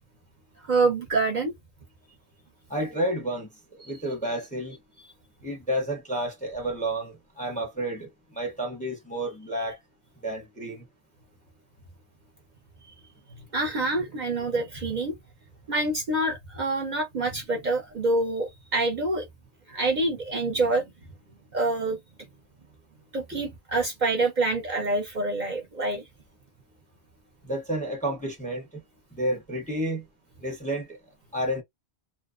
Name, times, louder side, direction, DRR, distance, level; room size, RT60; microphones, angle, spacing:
voice 1, 0.7-1.5 13.5-15.1 15.7-19.2 19.7-20.8 21.5-22.0 23.1-26.0, right 2 dB, 50° right, 0.7 m, -26 dB
voice 2, 2.7-4.8 5.4-9.8 10.2-10.9 27.4-28.7 29.1-30.0 30.4-31.0 31.3-31.6, right 1 dB, 10° left, 0.6 m, -30 dB
2.7 x 2.0 x 2.4 m
omnidirectional pair, 1.1 m